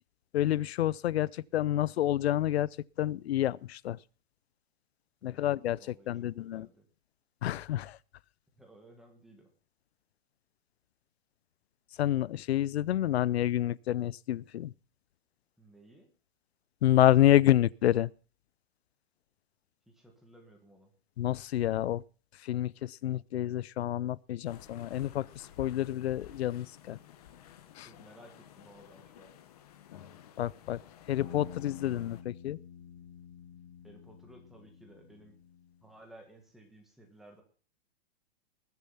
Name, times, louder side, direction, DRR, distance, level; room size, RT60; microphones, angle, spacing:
voice 1, 0.3-2.7 3.0-4.0 5.2-6.7 7.4-8.0 12.0-14.7 16.8-18.1 21.2-22.0 22.4-27.0 27.8-27.9 30.4-30.8 31.1-32.6, left 13 dB, 90° left, 0.6 m, -28 dB
voice 2, 5.8-6.8 8.5-9.5 15.6-16.1 19.9-20.9 27.8-29.3 33.8-35.4 35.8-37.4, right 1 dB, ahead, 1.6 m, -56 dB
sound 1, 24.4-32.2, left 10 dB, 40° left, 1.3 m, -53 dB
sound 2, 31.2-35.9, left 8 dB, 25° left, 1.7 m, -49 dB
20.5 x 7.0 x 5.6 m
hypercardioid pair, 175°, 31 cm